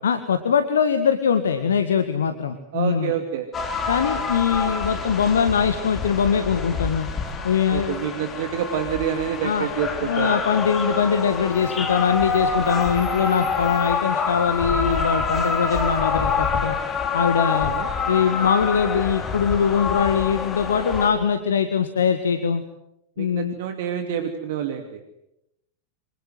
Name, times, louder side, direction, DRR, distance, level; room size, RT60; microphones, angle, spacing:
voice 1, 0.0-3.1 3.9-7.1 7.4-8.0 9.4-9.7 10.0-16.8 17.1-17.7 18.1-22.6 23.2-23.6, left 7 dB, 65° left, 9 dB, 1.7 m, -22 dB
voice 2, 2.7-3.5 7.7-10.4 17.5-17.9 23.2-25.0, right 9 dB, 55° right, 7 dB, 2.5 m, -27 dB
sound 1, 3.5-21.1, left 5 dB, 25° left, 4.7 m, -27 dB
27.5 x 26.0 x 7.9 m, 0.84 s
figure-of-eight pair, 90°, 0 cm